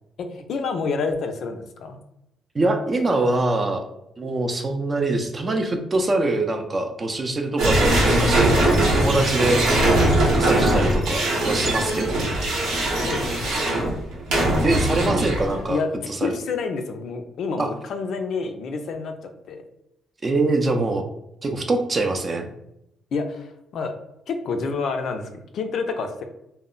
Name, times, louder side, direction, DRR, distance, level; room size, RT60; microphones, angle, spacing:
voice 1, 0.2-2.0 11.6-11.7 13.0-13.6 15.1-15.2 15.7-19.1 19.5-19.6 23.1-23.9 24.3-26.2, left 4 dB, 65° left, 6 dB, 0.4 m, -28 dB
voice 2, 2.5-3.9 4.2-9.6 10.3-12.3 14.6-15.8 16.1-16.4 17.6-17.7 20.2-21.1 21.4-22.5, right 2 dB, 35° right, 4 dB, 0.5 m, -24 dB
sound 1, 7.6-15.7, right 1 dB, 85° right, 0.8 m, -21 dB
2.1 x 2.0 x 3.7 m, 0.84 s
cardioid pair, 90°, 0 cm